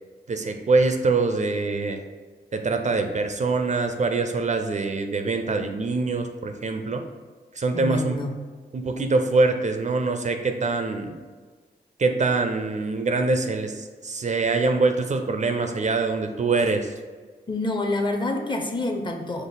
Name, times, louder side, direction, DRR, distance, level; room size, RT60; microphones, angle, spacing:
voice 1, 0.3-2.0 2.5-7.0 7.6-8.2 8.7-11.2 12.0-16.9, right 3 dB, 45° right, 6 dB, 0.4 m, -24 dB
voice 2, 7.7-8.3 17.5-19.5, left 2 dB, 25° left, 4 dB, 0.6 m, -27 dB
5.1 x 2.0 x 3.9 m, 1.4 s
cardioid pair, 60°, 18 cm